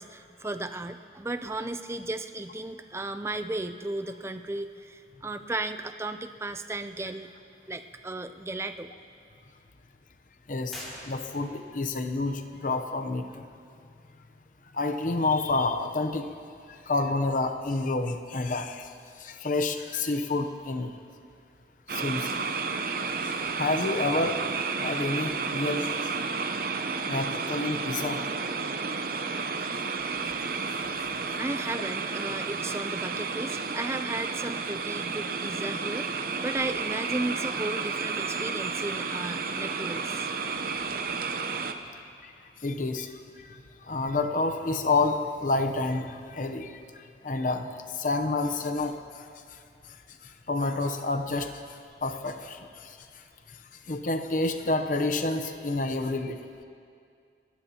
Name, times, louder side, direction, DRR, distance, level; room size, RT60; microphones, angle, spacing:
voice 1, 0.0-7.3 7.7-8.9 31.4-40.3, right 2 dB, 15° right, 9 dB, 0.4 m, -35 dB
voice 2, 10.5-13.4 14.7-16.3 16.7-21.0 21.9-22.8 23.2-24.4 24.8-26.4 27.1-28.2 29.3-29.5 29.9-30.1 31.0-31.1 42.2-42.3 42.6-49.6 49.9-50.0 50.2-53.6 53.8-56.4, left 3 dB, 45° left, 7 dB, 0.8 m, -29 dB
sound 1, 10.6-11.7, equal, ahead, 4.2 m, -44 dB
sound 2, 21.9-41.7, right 4 dB, 50° right, 0.7 m, -32 dB
29.5 x 14.5 x 2.9 m, 2.3 s
head